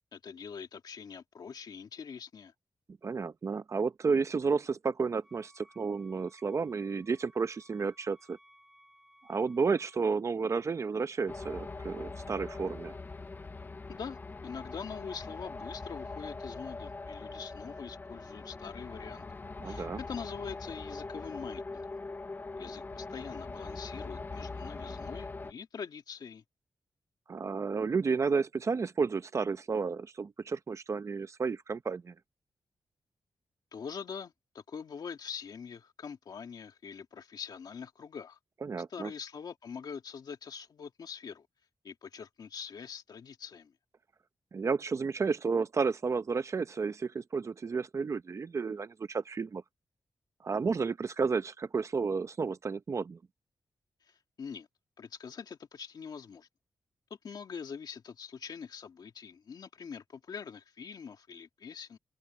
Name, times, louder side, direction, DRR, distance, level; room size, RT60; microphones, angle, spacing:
voice 1, 0.1-2.5 13.9-14.2 14.4-19.2 19.6-21.8 22.6-26.4 33.7-38.4 38.9-41.5 41.8-43.7 54.1-54.7 55.0-56.5 57.2-62.0, left 6 dB, 60° left, 2.0 m, -44 dB
voice 2, 3.0-8.4 9.3-12.9 19.6-20.0 27.3-32.1 38.6-39.1 44.5-49.6 50.4-53.2, right 5 dB, 40° right, 0.8 m, -32 dB
Wind instrument woodwind instrument, 5.2-10.1, equal, 5° right, 5.9 m, -62 dB
sound 1, 11.3-25.5, left 3 dB, 25° left, 0.6 m, -42 dB
wide cardioid pair, 160°, 8 cm